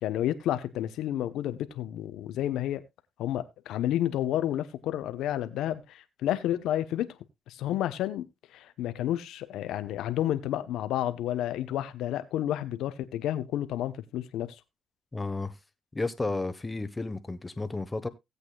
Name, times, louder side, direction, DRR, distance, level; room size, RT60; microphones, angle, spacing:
voice 1, 0.0-2.8 3.2-7.1 7.5-14.5, left 12 dB, 85° left, 0.9 m, -30 dB
voice 2, 15.1-15.5 15.9-18.1, left 3 dB, 20° left, 1.2 m, -32 dB
17.0 x 8.3 x 2.3 m
cardioid pair, 90°, 0 cm